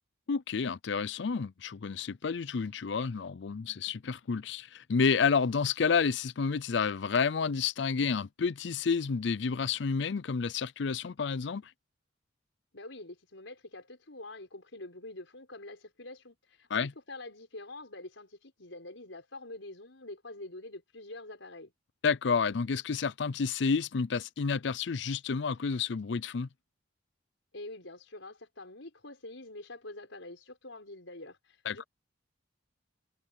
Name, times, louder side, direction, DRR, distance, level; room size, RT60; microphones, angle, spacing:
voice 1, 0.3-11.7 16.7-16.9 22.0-26.5 31.7-31.8, left 5 dB, 65° left, 0.5 m, -30 dB
voice 2, 12.7-21.7 27.5-31.9, left 2 dB, 85° left, 5.1 m, -46 dB
head